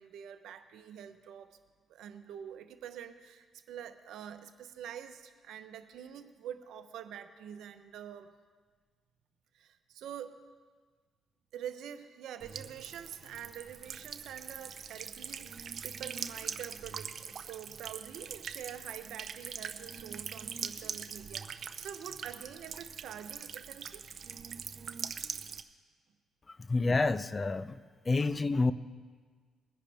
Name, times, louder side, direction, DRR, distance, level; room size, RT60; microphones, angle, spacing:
voice 1, 0.0-1.6 1.9-8.3 9.5-10.4 11.5-24.1, right 9 dB, 80° right, 9 dB, 0.9 m, -46 dB
Buzz / Water tap faucet / Trickle dribble, 12.4-25.6, right 7 dB, 55° right, 0.6 m, -42 dB
voice 2, 26.5-27.8 28.1-28.7, left 3 dB, 30° left, 15 dB, 0.5 m, -29 dB
21.0 x 10.5 x 3.5 m, 1.5 s
cardioid pair, 90°, 0 cm